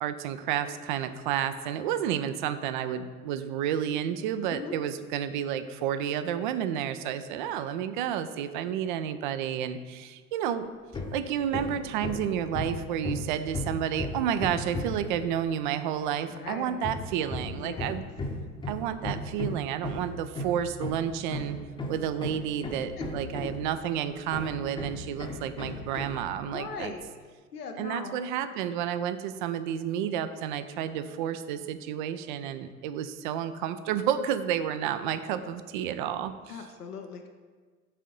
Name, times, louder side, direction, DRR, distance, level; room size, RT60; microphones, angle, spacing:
voice 1, 0.0-10.7 11.1-18.0 18.7-21.6 21.9-26.9 27.8-36.7, right 9 dB, 35° right, 12 dB, 0.4 m, -31 dB
Hammer, 10.9-11.2 11.5-15.1 16.8-23.8 24.3-26.2, left 2 dB, 10° left, 0.8 m, -35 dB
voice 2, 16.3-16.8 17.5-17.9 23.0-23.1 26.5-27.0 27.5-28.2 36.5-37.3, left 5 dB, 80° left, 4 dB, 0.7 m, -39 dB
8.3 x 3.7 x 5.2 m, 1.5 s
figure-of-eight pair, 80°, 45 cm